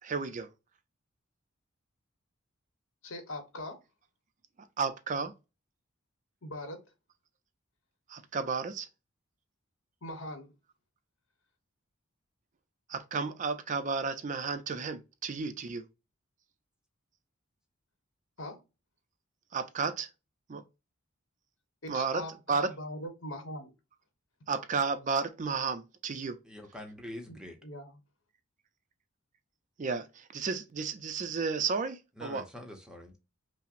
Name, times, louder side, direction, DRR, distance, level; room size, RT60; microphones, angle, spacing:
voice 1, 0.0-0.5 4.8-5.3 8.1-8.9 12.9-15.8 19.5-20.1 20.5-20.6 21.9-22.2 22.5-22.7 24.5-26.4 29.8-32.4, right 5 dB, 35° right, 0.4 m, -32 dB
voice 2, 3.0-3.8 6.4-6.8 10.0-10.5 18.4-18.6 21.8-23.7 27.3-28.0, left 1 dB, 65° left, 1.1 m, -41 dB
voice 3, 26.4-27.6 32.2-33.1, left 1 dB, 5° right, 0.7 m, -44 dB
5.5 x 2.0 x 2.4 m
head